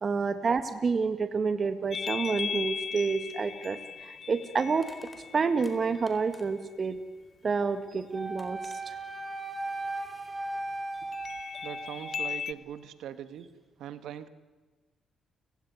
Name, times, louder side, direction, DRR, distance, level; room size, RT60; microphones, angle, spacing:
voice 1, 0.0-4.9 5.3-7.0 7.4-9.0, right 5 dB, 45° right, 10 dB, 1.6 m, -29 dB
sound 1, 1.9-6.5 11.1-12.5, left 7 dB, 55° left, 0.8 m, -37 dB
Crushing, 3.4-3.5 4.8-6.7 7.9-8.0 8.4-8.8, left 2 dB, 20° left, 4.2 m, -54 dB
Wind instrument woodwind instrument, 8.1-12.4, right 2 dB, 20° right, 3.9 m, -37 dB
voice 2, 11.6-13.5 13.8-14.3, right 10 dB, 80° right, 12 dB, 1.5 m, -41 dB
30.0 x 17.5 x 9.7 m, 1.3 s
cardioid pair, 70°, 0 cm